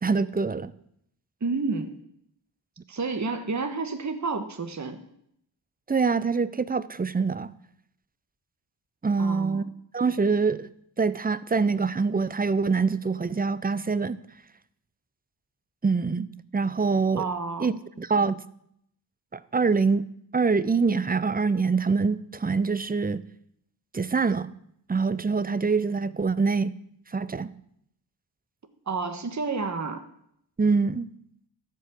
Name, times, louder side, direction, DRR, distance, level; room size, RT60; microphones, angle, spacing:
voice 1, 0.0-0.7 5.9-7.5 9.0-9.6 9.9-10.7 11.0-14.2 15.8-16.3 16.5-17.3 17.6-18.4 19.3-20.1 20.3-23.2 23.9-24.5 24.9-26.7 27.1-27.5 30.6-31.1, right 4 dB, 20° right, 17 dB, 0.6 m, -24 dB
voice 2, 1.4-2.0 2.9-5.0 9.2-9.6 17.2-17.7 28.9-30.0, right 4 dB, 40° right, 7 dB, 1.3 m, -30 dB
13.0 x 5.4 x 8.0 m, 0.72 s
cardioid pair, 60°, 45 cm